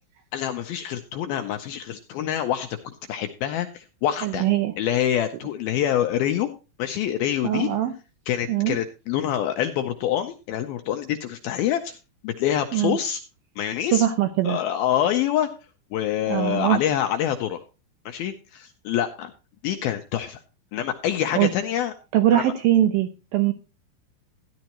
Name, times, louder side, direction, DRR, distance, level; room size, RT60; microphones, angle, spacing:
voice 1, 0.3-4.5 4.8-6.5 6.8-7.7 8.3-12.0 12.2-13.2 13.6-14.1 14.4-15.5 15.9-17.6 18.1-19.3 19.6-20.4 20.7-21.9 22.3-22.5, left 10 dB, 80° left, 6 dB, 2.2 m, -26 dB
voice 2, 4.2-4.7 7.4-7.9 8.5-8.8 12.7-13.0 13.9-14.6 16.3-16.8 21.4-21.5 22.1-23.5, right 12 dB, 80° right, 8 dB, 2.2 m, -21 dB
13.5 x 10.5 x 3.0 m, 0.31 s
omnidirectional pair, 5.1 m